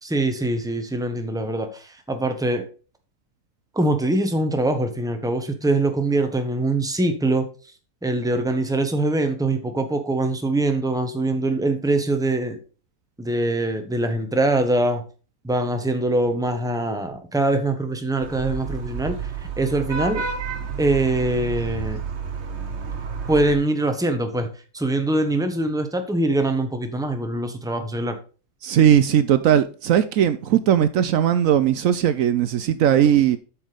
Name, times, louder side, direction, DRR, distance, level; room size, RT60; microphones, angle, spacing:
voice 1, 0.0-2.6 3.7-7.5 8.0-12.6 13.2-15.0 15.4-19.3 19.6-20.2 20.8-22.0 23.3-24.5 24.7-28.2, right 2 dB, 5° right, 1.1 m, -23 dB
Vehicle horn car horn honking / Traffic noise roadway noise, 18.2-23.5, right 6 dB, 50° right, 1.2 m, -30 dB
voice 2, 28.6-33.4, right 10 dB, 70° right, 1.0 m, -18 dB
8.6 x 6.1 x 5.1 m
omnidirectional pair, 1.5 m